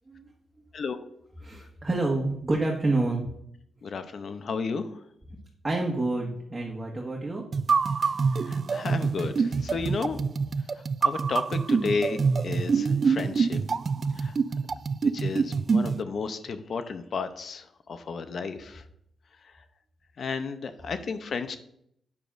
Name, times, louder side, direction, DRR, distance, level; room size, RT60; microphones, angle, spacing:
voice 1, 1.4-3.3 5.6-7.4, right 2 dB, 25° right, -1 dB, 1.5 m, -28 dB
voice 2, 3.8-5.0 8.3-10.2 10.7-13.6 14.1-14.3 15.0-18.8 19.4-19.6 20.2-21.6, left 4 dB, 60° left, 10 dB, 0.6 m, -33 dB
sound 1, 7.5-16.0, right 5 dB, 50° right, 0.3 m, -26 dB
8.2 x 6.7 x 2.5 m, 0.71 s
supercardioid pair, 55°, 0 cm